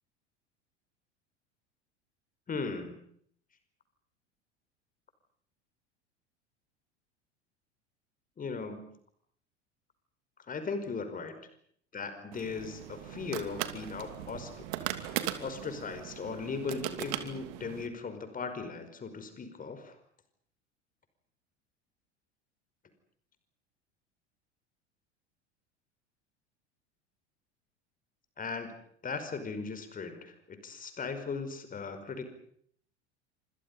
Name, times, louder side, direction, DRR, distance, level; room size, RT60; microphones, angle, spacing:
voice 1, 2.5-3.0 8.4-8.9 10.5-11.4 11.9-20.0 28.4-28.7 29.0-32.2, left 4 dB, 25° left, 9 dB, 5.2 m, -38 dB
sound 1, 12.3-17.9, right 13 dB, 55° right, 2.8 m, -39 dB
29.5 x 26.5 x 5.6 m, 0.64 s
figure-of-eight pair, 75°, 35 cm